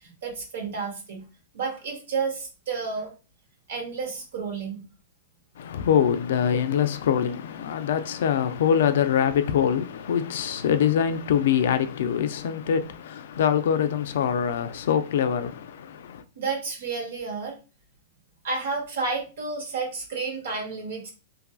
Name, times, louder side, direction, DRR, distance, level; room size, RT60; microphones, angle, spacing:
voice 1, 0.0-1.2 1.5-3.1 3.7-4.8 16.4-17.5 18.4-21.1, right 4 dB, 75° right, 0.9 m, -31 dB
voice 2, 5.6-16.2, left 8 dB, 70° left, 0.3 m, -24 dB
2.6 x 2.5 x 2.3 m
hypercardioid pair, 125°, 0 cm